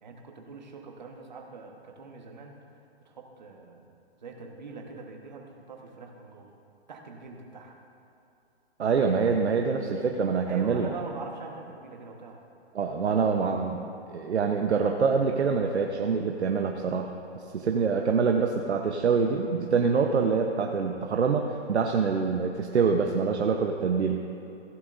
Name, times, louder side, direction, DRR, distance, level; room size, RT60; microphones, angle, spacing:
voice 1, 0.0-2.6 3.0-3.8 4.2-6.5 6.9-7.8 10.5-12.4 19.8-19.9, right 4 dB, 45° right, 1 dB, 1.3 m, -43 dB
voice 2, 8.8-10.9 12.7-17.1 17.5-24.3, right 5 dB, 85° right, 3 dB, 0.9 m, -25 dB
16.0 x 11.0 x 2.6 m, 2.7 s
hypercardioid pair, 175°, 33 cm